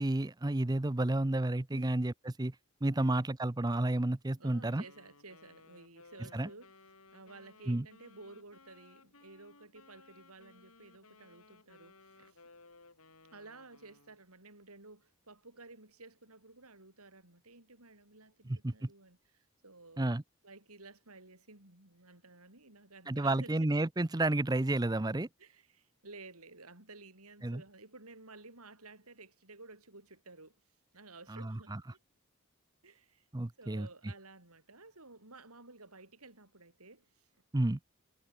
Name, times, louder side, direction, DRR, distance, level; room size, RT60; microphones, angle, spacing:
voice 1, 0.0-2.1 2.4-2.6 2.8-4.8 6.3-6.5 7.7-7.9 18.5-18.9 20.0-20.2 23.1-25.3 27.4-27.6 31.3-31.8 33.3-34.1 37.5-37.8, right 2 dB, 15° right, 0.6 m, -31 dB
voice 2, 1.7-2.0 3.0-3.1 4.4-6.7 7.1-12.4 13.3-20.1 20.4-23.6 25.4-30.6 30.9-32.0 32.8-33.2 33.6-37.4, right 3 dB, 85° right, 6.4 m, -54 dB
Wind instrument woodwind instrument, 4.6-14.2, left 3 dB, 75° left, 6.8 m, -60 dB
head